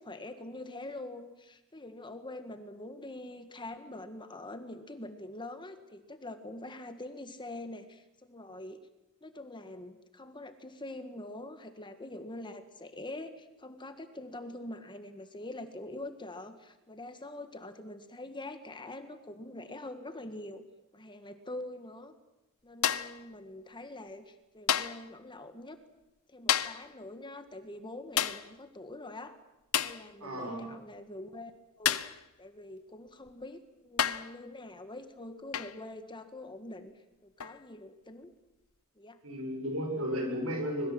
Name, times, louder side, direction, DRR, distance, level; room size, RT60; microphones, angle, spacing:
voice 1, 0.0-8.8 9.2-20.6 20.9-22.1 22.6-25.8 26.3-29.4 29.8-31.5 31.8-38.3 39.0-39.2, left 1 dB, 20° left, 8 dB, 1.7 m, -44 dB
sound 1, 22.8-23.2 24.7-25.1 26.5-26.9 28.2-28.5 29.7-30.0 31.9-32.2 33.3-33.4 34.0-34.4 35.5-35.8 37.4-37.6, left 10 dB, 70° left, 1.0 m, -30 dB
voice 2, 30.2-30.7 39.2-40.9, equal, 70° right, 3 dB, 7.3 m, -34 dB
25.5 x 21.5 x 7.8 m, 0.96 s
head